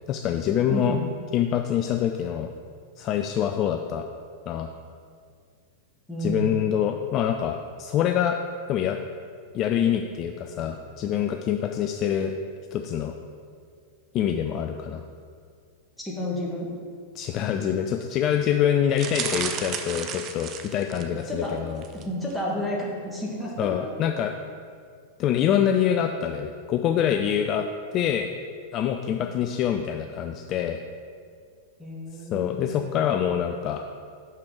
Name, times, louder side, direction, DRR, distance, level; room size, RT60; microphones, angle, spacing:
voice 1, 0.1-1.0 1.3-2.5 3.0-4.1 4.5-4.7 6.2-8.4 8.7-9.0 9.5-12.3 12.7-13.2 14.1-15.0 17.1-21.9 23.6-24.3 25.2-27.7 27.9-28.3 28.7-30.8 32.1-33.8, left 9 dB, 35° left, 5 dB, 0.3 m, -25 dB
voice 2, 0.7-1.1 6.1-6.6 16.0-16.7 21.0-21.5 21.9-23.7 29.1-29.3 31.8-33.2, equal, 5° left, -4 dB, 1.6 m, -31 dB
sound 1, 19.0-21.2 21.8-22.0 22.3-22.4, right 7 dB, 35° right, 0.5 m, -33 dB
6.1 x 5.7 x 4.7 m, 2.1 s
figure-of-eight pair, 90°, 0 cm